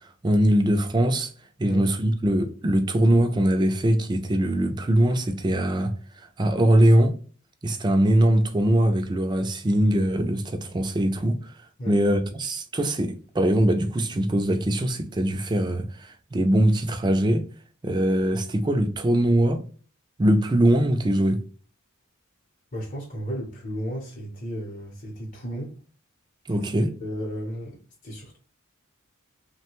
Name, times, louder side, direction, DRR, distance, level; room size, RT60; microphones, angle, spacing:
voice 1, 0.2-1.3 1.6-7.1 7.6-11.5 11.9-17.5 17.8-19.6 20.2-21.4 26.5-26.9, right 1 dB, 20° right, 0.4 m, -22 dB
voice 2, 11.8-12.2 22.7-25.8 26.5-26.6 27.0-28.4, equal, 40° left, 0.7 m, -34 dB
3.1 x 2.1 x 3.0 m
head